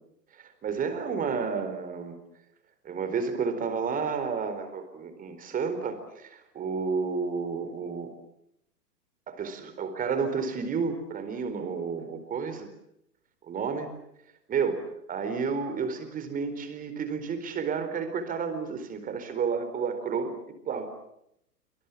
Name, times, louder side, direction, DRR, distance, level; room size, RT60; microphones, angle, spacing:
voice 1, 0.4-2.2 2.8-8.1 9.3-12.7 13.5-13.9 14.5-14.8 15.1-20.3 20.7-20.9, right 5 dB, 15° right, 9 dB, 4.2 m, -31 dB
27.5 x 25.5 x 7.6 m, 0.78 s
figure-of-eight pair, 115°, 49 cm